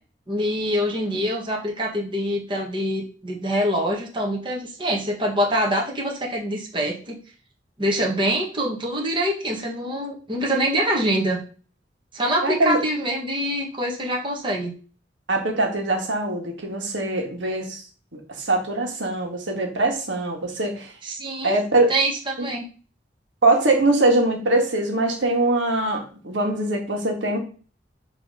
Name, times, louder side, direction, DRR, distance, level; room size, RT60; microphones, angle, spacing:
voice 1, 0.3-7.2 7.8-11.4 12.1-14.7 21.0-21.6 21.9-22.6, equal, 25° right, -1 dB, 1.6 m, -25 dB
voice 2, 12.4-12.8 15.3-17.8 18.1-20.9 21.4-21.9 22.4-22.5 23.4-27.4, right 2 dB, 85° right, 1 dB, 1.7 m, -22 dB
6.2 x 3.3 x 5.5 m, 0.38 s
head